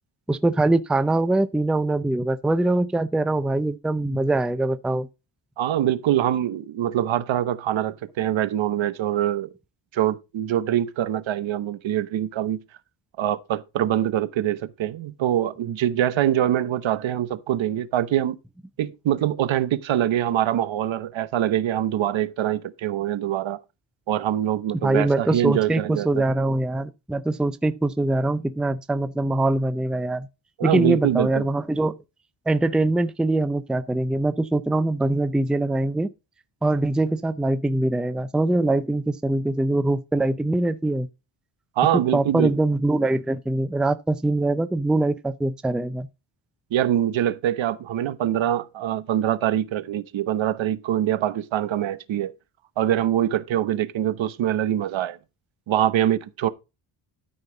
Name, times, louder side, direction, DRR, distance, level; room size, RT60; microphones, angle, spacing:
voice 1, 0.3-5.1 24.8-30.3 30.6-31.9 32.5-36.1 36.6-41.1 42.1-46.1, right 2 dB, ahead, 0.5 m, -23 dB
voice 2, 5.6-9.5 9.9-12.6 13.2-18.4 18.8-23.6 24.1-26.2 30.6-31.5 41.8-42.5 46.7-52.3 52.8-55.2 55.7-56.5, right 11 dB, 75° right, 1.1 m, -24 dB
13.0 x 5.6 x 3.9 m
cardioid pair, 125°, 47 cm